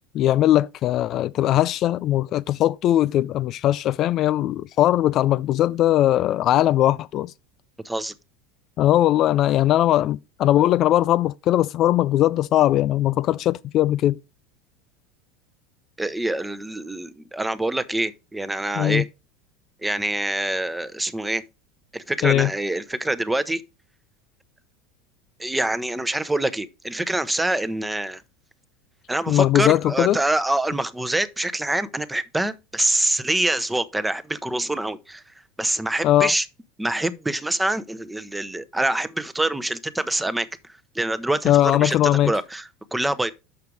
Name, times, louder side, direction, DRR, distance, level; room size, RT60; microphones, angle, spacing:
voice 1, 0.1-7.3 8.8-14.2 18.7-19.0 22.2-22.5 29.3-30.2 36.0-36.3 41.4-42.3, left 13 dB, 50° left, 0.3 m, -20 dB
voice 2, 16.0-19.1 19.8-21.4 21.9-23.6 25.4-28.2 29.1-35.2 35.6-36.4 36.8-40.5 40.9-43.3, right 1 dB, 10° right, 0.7 m, -25 dB
6.7 x 5.9 x 4.8 m
hypercardioid pair, 95°, 0 cm